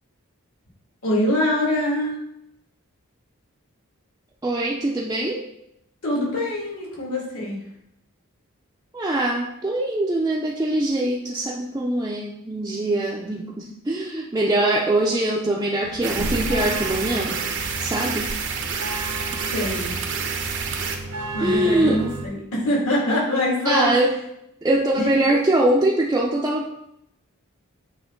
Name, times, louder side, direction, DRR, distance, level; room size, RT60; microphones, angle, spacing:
voice 1, 1.0-2.2 6.0-7.6 19.4-19.9 21.3-24.0 25.0-25.4, left 1 dB, 70° left, -5 dB, 2.3 m, -24 dB
voice 2, 4.4-5.4 8.9-17.5 17.8-18.3 19.3-19.4 21.4-22.0 23.6-24.1 24.6-26.7, right 1 dB, 15° right, -4 dB, 0.5 m, -23 dB
sound 1, 15.8-22.3, right 2 dB, 85° right, 1.0 m, -33 dB
sound 2, 16.0-21.0, right 5 dB, 55° right, 0.7 m, -29 dB
8.6 x 3.1 x 3.8 m, 0.79 s
head